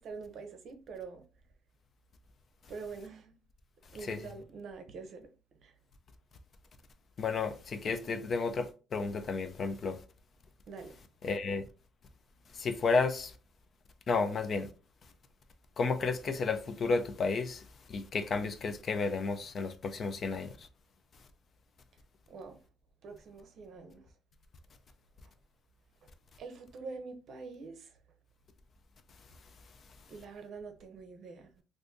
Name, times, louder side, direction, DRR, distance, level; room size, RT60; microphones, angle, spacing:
voice 1, 0.0-1.2 2.7-3.3 3.9-5.3 5.6-5.8 10.7-11.0 22.3-22.6 23.0-24.1 26.4-28.0 30.1-31.6, right 4 dB, 55° right, 0.7 m, -45 dB
voice 2, 7.2-10.0 11.2-11.6 12.5-13.3 14.1-14.7 15.8-20.7, left 4 dB, 40° left, 0.4 m, -32 dB
2.6 x 2.5 x 3.5 m
cardioid pair, 135°, 0 cm